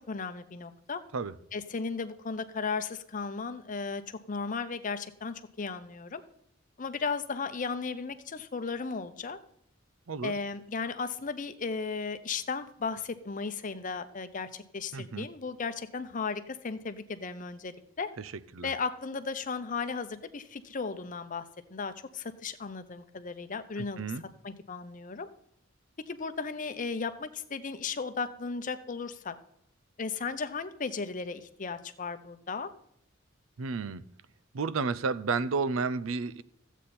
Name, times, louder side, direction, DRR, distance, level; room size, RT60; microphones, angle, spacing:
voice 1, 0.1-1.0 1.5-6.2 6.8-9.4 10.2-18.1 18.6-21.4 21.7-24.0 24.4-25.3 26.1-29.3 30.0-32.7, left 4 dB, 40° left, 10 dB, 0.7 m, -35 dB
voice 2, 14.9-15.3 18.2-18.7 23.8-24.2 33.6-34.0 34.5-36.4, right 4 dB, 85° right, 16 dB, 0.5 m, -32 dB
14.0 x 8.2 x 4.2 m, 0.74 s
head